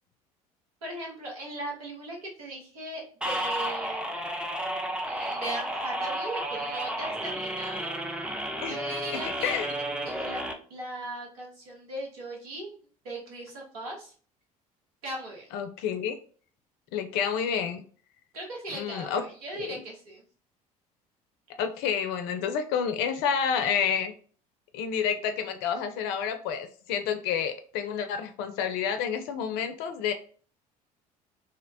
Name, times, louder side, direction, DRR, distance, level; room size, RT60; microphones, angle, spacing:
voice 1, 0.8-4.2 5.0-8.0 8.6-9.6 10.0-10.4 10.7-12.7 13.0-14.1 15.0-15.5 18.3-20.2, right 1 dB, 80° right, -2 dB, 1.0 m, -38 dB
sound 1, 3.2-10.5, right 1 dB, 5° right, 0.4 m, -32 dB
voice 2, 9.1-9.7 15.5-16.1 16.9-17.8 18.7-19.2 19.6-19.8 21.6-24.1 24.7-30.1, left 7 dB, 60° left, 8 dB, 0.4 m, -29 dB
2.7 x 2.0 x 2.5 m, 0.43 s
hypercardioid pair, 60°, 19 cm